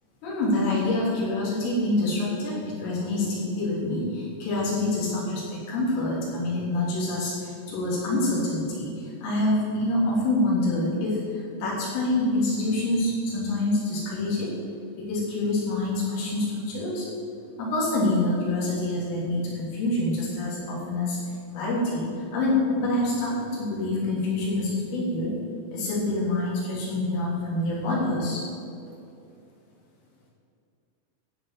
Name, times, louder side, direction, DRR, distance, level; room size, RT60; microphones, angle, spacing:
voice 1, 0.2-14.5 15.0-17.1 17.6-21.2 21.5-22.1 22.3-25.3 25.7-28.4, left 2 dB, 85° left, -6 dB, 6.0 m, -26 dB
15.5 x 5.7 x 7.9 m, 2.5 s
omnidirectional pair, 5.7 m